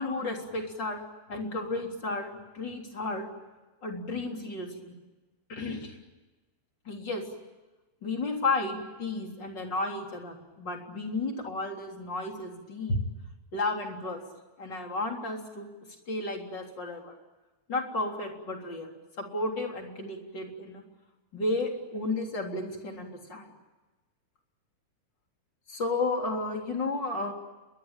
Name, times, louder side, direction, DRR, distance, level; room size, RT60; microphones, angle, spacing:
voice 1, 0.0-3.3 3.8-4.9 5.5-6.0 6.9-7.2 8.0-13.0 13.5-14.2 14.6-15.7 16.1-17.2 17.7-20.8 21.3-23.5 25.7-27.3, left 2 dB, 30° left, 2 dB, 3.9 m, -33 dB
29.0 x 22.5 x 9.1 m, 1.2 s
omnidirectional pair, 4.4 m